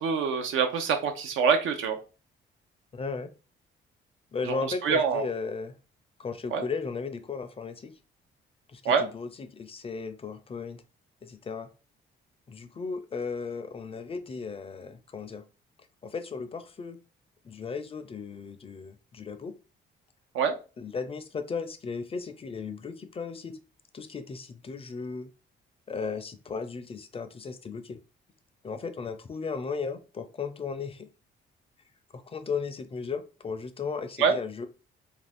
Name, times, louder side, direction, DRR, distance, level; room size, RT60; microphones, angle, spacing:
voice 1, 0.0-2.0 4.4-5.3 6.5-6.6 8.8-9.1 20.3-20.5 34.2-34.3, right 6 dB, 85° right, 6 dB, 0.6 m, -25 dB
voice 2, 2.9-3.3 4.3-5.8 6.2-7.9 8.7-10.8 11.2-11.7 12.5-15.4 16.0-17.0 17.4-19.5 20.8-23.6 23.9-25.3 25.9-28.0 28.6-31.1 32.1-34.7, left 5 dB, 30° left, 10 dB, 0.4 m, -35 dB
2.5 x 2.3 x 3.3 m, 0.34 s
cardioid pair, 90°, 20 cm